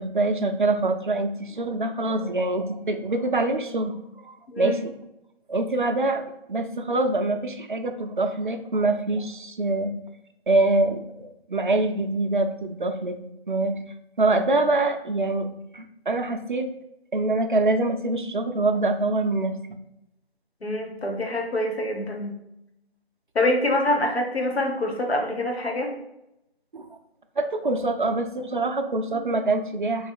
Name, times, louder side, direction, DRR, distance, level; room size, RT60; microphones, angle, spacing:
voice 1, 0.0-5.0 5.5-9.9 10.5-13.2 13.5-13.8 14.2-15.5 15.7-16.7 17.1-19.8 26.7-26.9 27.4-30.1, right 2 dB, 50° right, 7 dB, 0.5 m, -25 dB
voice 2, 20.6-22.3 23.3-25.9, left 1 dB, 80° left, 2 dB, 1.2 m, -25 dB
3.2 x 3.1 x 4.6 m, 0.85 s
figure-of-eight pair, 170°, 31 cm